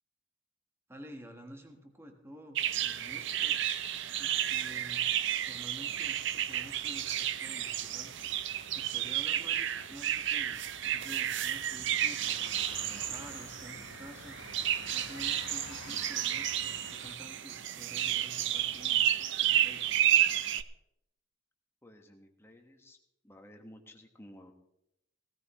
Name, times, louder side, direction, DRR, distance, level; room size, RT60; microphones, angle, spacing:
voice 1, 0.9-3.6 4.2-8.1 8.7-14.6 14.9-19.0 19.4-19.9, equal, 10° right, 4 dB, 1.4 m, -50 dB
sound 1, 2.6-20.6, right 11 dB, 60° right, 0.6 m, -31 dB
sound 2, 5.8-17.2, left 5 dB, 65° left, 0.9 m, -52 dB
voice 2, 21.8-23.0 23.2-24.5, left 1 dB, 10° left, 3 dB, 1.4 m, -54 dB
17.5 x 13.5 x 3.1 m, 0.81 s
head